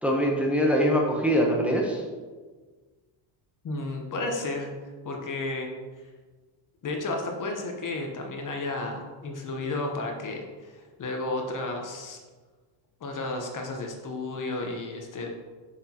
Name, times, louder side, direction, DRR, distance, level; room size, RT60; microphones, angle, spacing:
voice 1, 0.0-2.0, equal, 5° right, -1 dB, 0.9 m, -23 dB
voice 2, 3.6-4.7 5.0-5.7 6.8-12.2 13.0-15.3, left 2 dB, 40° left, 2 dB, 1.1 m, -32 dB
6.3 x 6.2 x 2.9 m, 1.4 s
cardioid pair, 105°, 47 cm